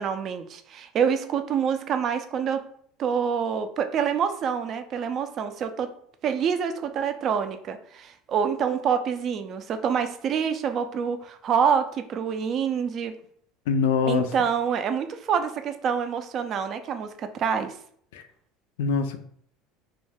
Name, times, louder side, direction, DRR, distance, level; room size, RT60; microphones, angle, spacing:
voice 1, 0.0-2.6 3.0-5.9 6.2-13.1 14.0-17.7, right 7 dB, 45° right, 9 dB, 0.3 m, -26 dB
voice 2, 13.7-14.3 18.1-18.2 18.8-19.2, left 5 dB, 85° left, 8 dB, 0.3 m, -24 dB
2.3 x 2.2 x 3.2 m, 0.62 s
supercardioid pair, 100°, 0 cm